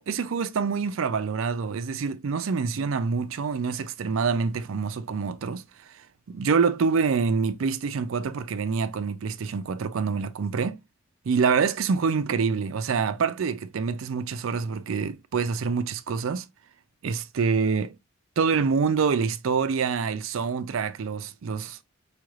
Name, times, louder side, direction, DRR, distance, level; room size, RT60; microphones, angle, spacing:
voice 1, 0.0-5.6 6.3-10.8 11.3-16.5 17.0-17.9 18.4-21.8, right 5 dB, 75° right, 0.4 m, -26 dB
4.9 x 3.1 x 2.3 m
head